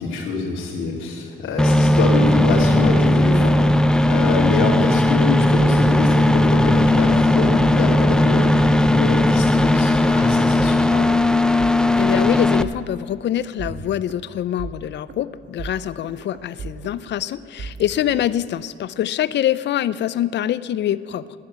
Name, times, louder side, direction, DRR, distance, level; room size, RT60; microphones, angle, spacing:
voice 1, 0.0-3.6 4.1-11.1, left 3 dB, 80° left, -6 dB, 2.7 m, -24 dB
sound 1, 1.6-12.6, left 1 dB, 5° left, 0.4 m, -17 dB
sound 2, 9.6-18.3, right 5 dB, 60° right, 1.5 m, -37 dB
voice 2, 12.0-21.2, left 11 dB, 65° left, 17 dB, 0.5 m, -24 dB
11.5 x 9.9 x 8.0 m, 2.4 s
cardioid pair, 90°, 20 cm